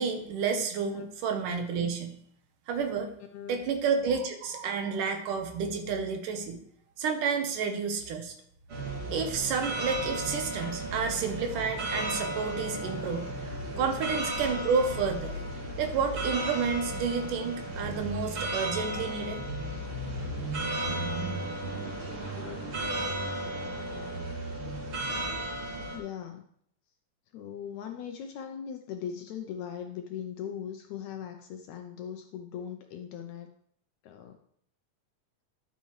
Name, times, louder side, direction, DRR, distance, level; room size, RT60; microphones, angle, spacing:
voice 1, 0.0-2.2 2.7-3.1 3.5-6.6 7.0-8.3 9.1-13.3 13.8-15.3 15.8-19.5, right 5 dB, 75° right, 5 dB, 2.6 m, -30 dB
sound 1, 8.7-26.0, right 1 dB, 45° right, 3.2 m, -34 dB
voice 2, 25.9-26.5 27.3-33.5 34.0-34.4, left 8 dB, 75° left, 5 dB, 1.8 m, -39 dB
11.5 x 8.0 x 3.2 m, 0.66 s
omnidirectional pair, 3.8 m